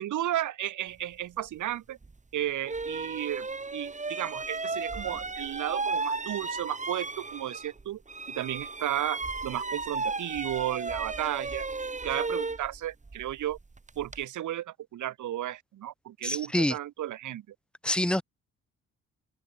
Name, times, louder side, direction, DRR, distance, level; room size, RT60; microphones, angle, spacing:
voice 1, 0.0-2.0 2.3-3.5 3.7-8.0 8.3-11.7 12.0-13.6 14.0-17.4, right 12 dB, 75° right, 6.0 m, -33 dB
sound 1, 2.0-2.1 2.6-7.8 8.1-14.2, right 3 dB, 25° right, 7.6 m, -34 dB
voice 2, 16.2-16.7 17.8-18.2, left 1 dB, 5° left, 0.5 m, -26 dB
cardioid pair, 90°, 30 cm